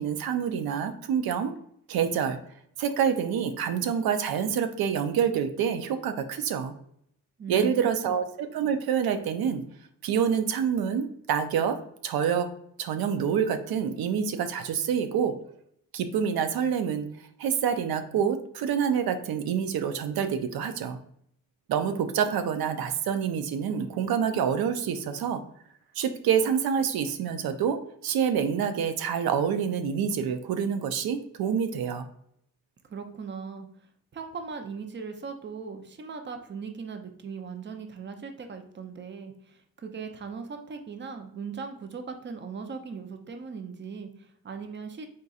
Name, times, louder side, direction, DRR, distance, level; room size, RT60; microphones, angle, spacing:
voice 1, 0.0-1.5 1.9-2.4 2.8-6.7 7.5-9.6 10.0-11.8 12.0-12.5 12.8-15.3 15.9-17.1 17.4-21.0 21.7-25.4 26.0-27.8 28.0-32.1, right 7 dB, 85° right, 8 dB, 0.5 m, -27 dB
voice 2, 7.4-8.2 32.9-33.7 34.1-45.1, right 5 dB, 30° right, 6 dB, 0.5 m, -39 dB
4.0 x 3.8 x 2.3 m, 0.69 s
cardioid pair, 105°, 35 cm